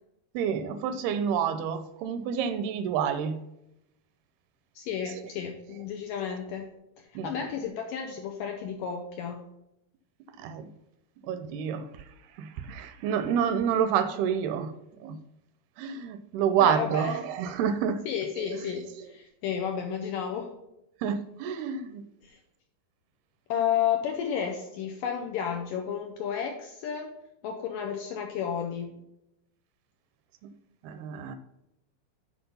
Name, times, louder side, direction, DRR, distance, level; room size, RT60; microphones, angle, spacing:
voice 1, 0.3-3.4 5.2-5.3 7.2-7.6 10.4-10.7 11.2-12.1 12.4-14.7 15.0-15.2 15.8-18.0 18.4-19.1 21.0-22.1 30.4-30.5 30.8-31.4, right 8 dB, 80° right, 10 dB, 2.4 m, -29 dB
voice 2, 4.8-6.7 7.0-9.4 16.6-17.2 18.1-20.5 22.2-22.4 23.5-27.1 27.4-28.9, left 8 dB, 75° left, 2 dB, 2.0 m, -32 dB
7.9 x 4.9 x 5.4 m, 0.85 s
omnidirectional pair, 4.7 m